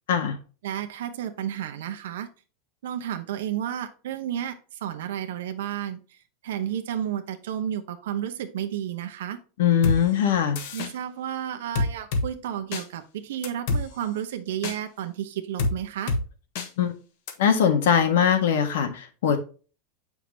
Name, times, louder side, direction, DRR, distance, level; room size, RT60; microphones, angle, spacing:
voice 1, 0.6-2.3 2.8-6.2 6.4-9.4 10.7-16.2, right 10 dB, 90° right, 7 dB, 0.9 m, -32 dB
voice 2, 9.6-10.6 16.8-16.9 17.4-19.4, left 8 dB, 80° left, 7 dB, 1.6 m, -21 dB
sound 1, 9.8-10.0 10.6-10.9 11.8-12.3 12.7-12.8 13.4-13.8 14.6-14.8 15.6-15.7 16.1-16.2 16.6-16.7 17.3-17.4, left 3 dB, 50° left, 1.2 m, -25 dB
7.8 x 5.7 x 2.7 m, 0.36 s
supercardioid pair, 175°, 0 cm